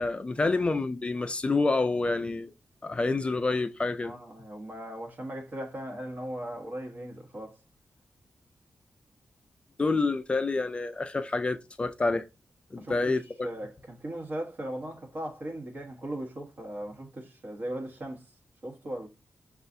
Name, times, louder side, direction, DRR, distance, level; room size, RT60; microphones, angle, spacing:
voice 1, 0.0-2.5 2.8-4.1 9.8-12.3 12.7-13.5, left 3 dB, 25° left, 0.4 m, -28 dB
voice 2, 4.0-7.6 12.8-18.2 18.6-19.1, right 1 dB, 45° right, 1.4 m, -38 dB
6.4 x 2.4 x 2.6 m
wide cardioid pair, 130°, 4 cm